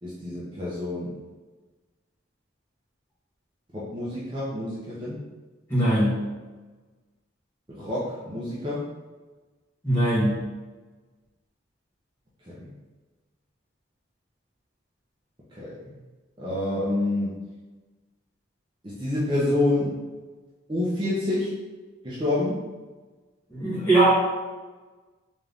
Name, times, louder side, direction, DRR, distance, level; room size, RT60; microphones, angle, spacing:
voice 1, 0.0-1.1 3.7-5.2 7.7-8.9 12.5-12.7 15.6-15.9 16.4-17.4 18.8-20.0 20.7-21.6 22.0-22.6, left 2 dB, 25° right, -8 dB, 0.6 m, -28 dB
voice 2, 5.7-6.2 9.8-10.4 23.5-24.2, right 1 dB, 10° left, -10 dB, 1.3 m, -21 dB
3.6 x 2.7 x 3.4 m, 1.3 s
head